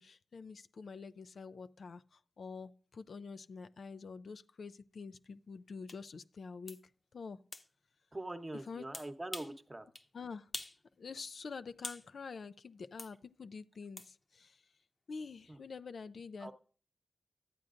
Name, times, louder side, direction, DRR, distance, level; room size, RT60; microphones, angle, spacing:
voice 1, 0.0-6.8 7.1-7.4 8.5-8.9 10.1-10.5 11.0-14.7 15.1-16.5, left 5 dB, 70° left, 0.3 m, -47 dB
sound 1, 5.9-6.0 6.7-6.8 7.5-7.7 8.9-9.6 10.0-10.1 10.5-10.8 11.1-12.1 13.0-13.1 14.0-14.1, left 2 dB, 40° left, 0.8 m, -45 dB
voice 2, 8.1-9.9 15.5-15.6 16.4-16.5, right 1 dB, 30° right, 0.9 m, -43 dB
12.5 x 8.4 x 2.5 m
cardioid pair, 45°, 0 cm